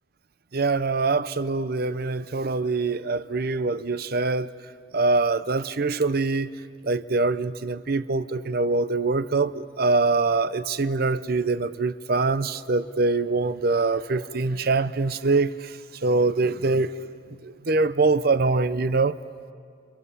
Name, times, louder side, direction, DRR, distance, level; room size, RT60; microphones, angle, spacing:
voice 1, 0.5-4.5 4.9-6.5 6.8-16.9 17.4-19.2, right 3 dB, 50° right, 0.7 m, -24 dB
29.5 x 28.0 x 6.9 m
head